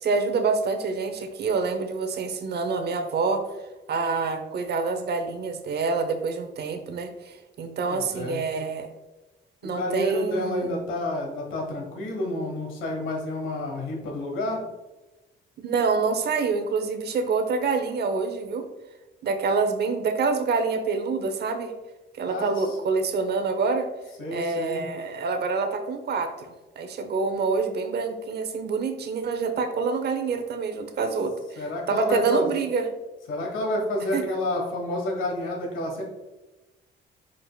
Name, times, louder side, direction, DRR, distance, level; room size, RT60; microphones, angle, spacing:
voice 1, 0.0-3.4 3.9-8.9 9.6-10.7 15.6-18.7 19.2-21.7 22.2-23.9 24.3-32.9 34.1-34.2, right 4 dB, 55° right, 7 dB, 0.7 m, -27 dB
voice 2, 7.9-8.4 9.6-14.6 22.3-22.8 24.2-24.9 31.6-32.5 33.3-36.0, left 1 dB, 85° left, 1 dB, 1.3 m, -29 dB
4.8 x 4.7 x 2.3 m, 1.1 s
cardioid pair, 90°, 20 cm